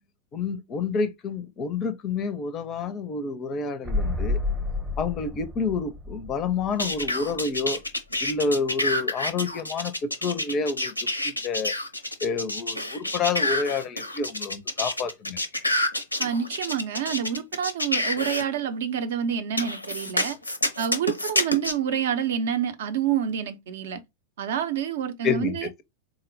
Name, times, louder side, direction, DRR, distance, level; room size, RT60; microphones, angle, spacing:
voice 1, 0.3-4.4 5.0-7.8 8.2-10.9 11.2-11.7 12.2-15.4 25.2-25.8, left 4 dB, 30° left, 0.4 m, -29 dB
sound 1, 3.8-7.6 7.9-8.0, left 3 dB, 15° right, 0.7 m, -30 dB
sound 2, 6.8-18.4 19.6-21.7, left 1 dB, 85° left, 0.5 m, -28 dB
voice 2, 16.2-20.4 20.8-24.0 24.4-25.7, right 8 dB, 60° right, 0.5 m, -28 dB
3.9 x 2.0 x 2.6 m
figure-of-eight pair, 90°, 0 cm